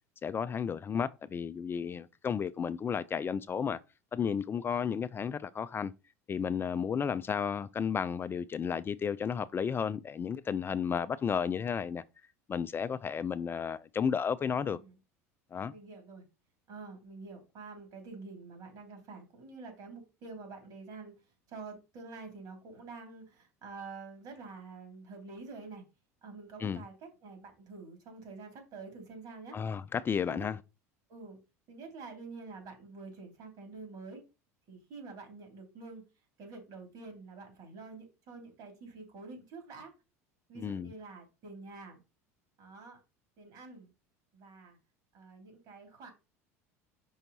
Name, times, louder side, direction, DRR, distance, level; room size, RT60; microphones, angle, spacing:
voice 1, 0.2-3.8 4.1-5.9 6.3-12.0 12.5-14.8 15.5-15.7 26.6-26.8 29.5-30.6 40.6-40.9, left 7 dB, 30° left, 0.4 m, -33 dB
voice 2, 14.5-15.0 15.7-16.2 16.7-21.1 21.5-25.9 26.2-29.6 30.3-30.5 31.1-31.4 31.7-34.2 34.7-36.0 36.4-39.9 40.5-42.0 42.6-43.0 43.4-43.9 44.3-44.8 45.1-46.1, right 4 dB, 55° right, 3.1 m, -47 dB
5.6 x 4.4 x 4.0 m
hypercardioid pair, 80°, 8 cm